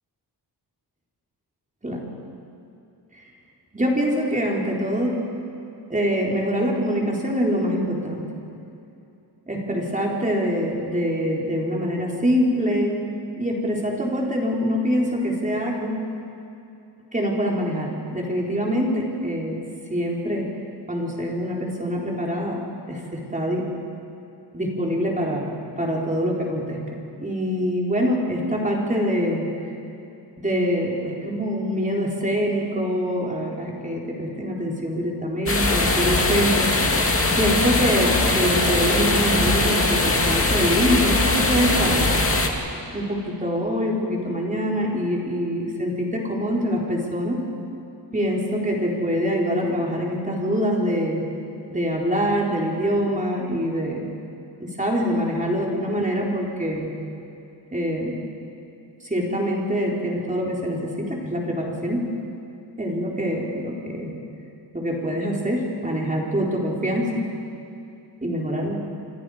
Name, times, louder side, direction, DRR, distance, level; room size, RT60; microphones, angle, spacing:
voice 1, 3.7-5.2 5.9-8.3 9.5-13.0 13.4-15.9 17.1-19.6 19.9-20.5 20.9-22.6 22.9-23.7 24.5-25.5 25.8-26.8 27.2-29.4 30.4-36.7 37.4-42.1 42.9-47.4 48.1-51.2 51.7-54.0 54.6-56.9 57.7-58.2 59.0-62.1 62.8-64.1 64.7-67.2 68.2-68.8, equal, 20° right, -2 dB, 4.2 m, -24 dB
sound 1, 35.5-42.5, left 2 dB, 30° left, 2.3 m, -21 dB
29.0 x 26.0 x 5.1 m, 2.7 s
wide cardioid pair, 145°, 43 cm